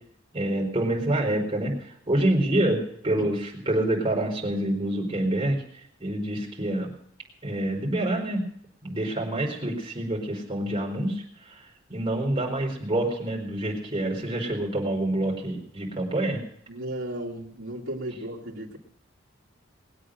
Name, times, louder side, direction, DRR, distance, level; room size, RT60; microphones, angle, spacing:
voice 1, 0.3-5.6 6.0-6.9 7.4-8.5 8.8-16.4, right 1 dB, 25° right, -2 dB, 4.5 m, -27 dB
voice 2, 16.7-18.8, right 1 dB, 80° right, -1 dB, 2.4 m, -35 dB
20.5 x 8.7 x 6.5 m, 0.66 s
head